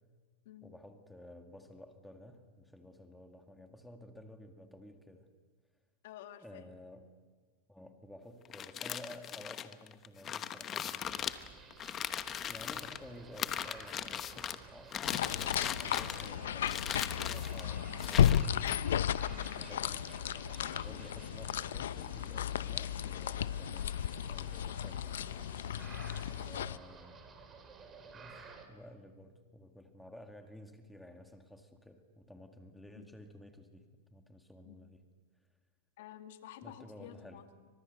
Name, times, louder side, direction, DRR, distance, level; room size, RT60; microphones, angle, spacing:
voice 1, 0.6-5.3 6.4-7.1 7.7-11.4 12.4-16.8 17.1-18.6 19.6-20.2 20.7-25.3 26.3-27.2 28.1-35.0 35.4-35.5 36.6-37.4, left 1 dB, 5° left, 5 dB, 2.1 m, -53 dB
voice 2, 6.0-6.7 17.6-18.0 19.3-19.7 26.1-26.3 33.0-33.1 34.6-34.8 36.0-37.7, left 11 dB, 65° left, 7 dB, 2.2 m, -52 dB
sound 1, 8.4-13.0 13.4-14.6 14.9-16.3 16.6-17.6 18.0-18.8, left 9 dB, 25° left, 1.1 m, -39 dB
sound 2, 11.0-28.7, right 5 dB, 20° right, 3.4 m, -53 dB
sound 3, 15.0-26.8, left 10 dB, 80° left, 0.7 m, -34 dB
29.5 x 25.0 x 6.7 m, 1.4 s
hypercardioid pair, 135°, 0 cm